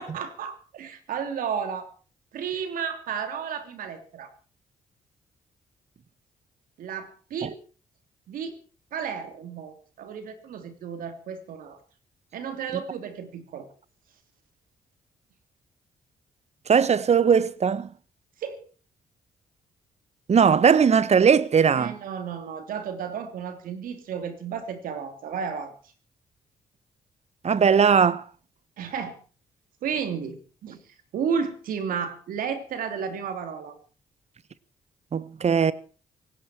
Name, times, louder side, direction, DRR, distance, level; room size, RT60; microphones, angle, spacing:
voice 1, 0.0-1.9 2.3-4.3 6.8-7.6 8.3-8.6 8.9-11.8 12.3-13.7 18.4-18.6 21.7-25.7 28.8-29.2 29.8-30.8 31.1-33.8, right 7 dB, 70° right, 3.0 m, -32 dB
voice 2, 16.7-17.9 20.3-22.0 27.4-28.2 35.1-35.7, right 6 dB, 50° right, 1.2 m, -19 dB
18.5 x 16.0 x 4.5 m
hypercardioid pair, 45°, 15 cm